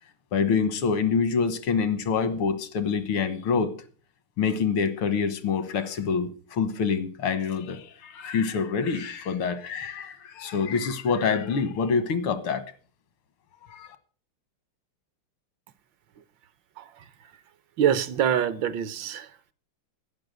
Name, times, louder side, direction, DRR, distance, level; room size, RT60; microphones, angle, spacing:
voice 1, 0.3-3.7 4.4-12.7 13.7-14.0, left 5 dB, 85° left, 2.1 m, -26 dB
voice 2, 16.8-17.1 17.8-19.5, right 9 dB, 70° right, 1.4 m, -26 dB
10.5 x 9.6 x 7.7 m
omnidirectional pair, 2.3 m